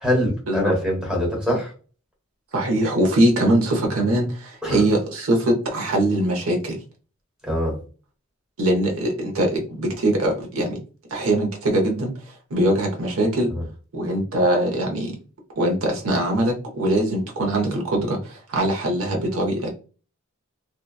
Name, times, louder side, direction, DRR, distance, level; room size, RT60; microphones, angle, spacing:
voice 1, 0.0-1.7 4.6-4.8 7.4-7.7, equal, 5° right, -3 dB, 1.1 m, -23 dB
voice 2, 2.5-6.8 8.6-10.8 11.1-13.5 13.9-15.1 15.6-19.7, right 1 dB, 70° right, 1 dB, 0.7 m, -22 dB
2.7 x 2.2 x 2.2 m, 0.36 s
head